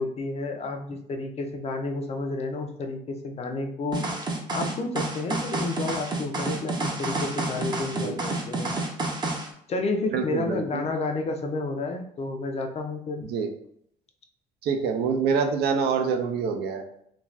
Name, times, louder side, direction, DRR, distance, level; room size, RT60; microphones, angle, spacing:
voice 1, 0.0-4.1 4.5-8.7 9.7-13.2, left 3 dB, 40° left, 5 dB, 0.5 m, -31 dB
sound 1, 3.9-9.5, right 2 dB, 25° right, 0.6 m, -29 dB
voice 2, 7.9-8.3 10.1-10.9 13.3-13.5 14.6-16.8, right 5 dB, 75° right, 5 dB, 0.5 m, -26 dB
2.5 x 2.3 x 3.2 m, 0.69 s
cardioid pair, 110°, 17 cm